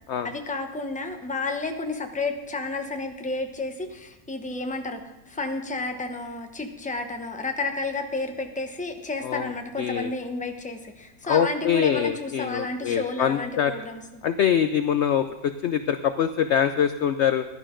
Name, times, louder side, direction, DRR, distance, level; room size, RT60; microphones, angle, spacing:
voice 1, 0.2-5.0 5.3-14.2, left 3 dB, 5° left, 5 dB, 0.8 m, -31 dB
voice 2, 9.2-10.1 11.2-13.7 14.2-17.5, left 8 dB, 65° left, 10 dB, 0.7 m, -24 dB
15.5 x 11.0 x 3.8 m, 1.1 s
omnidirectional pair, 1.6 m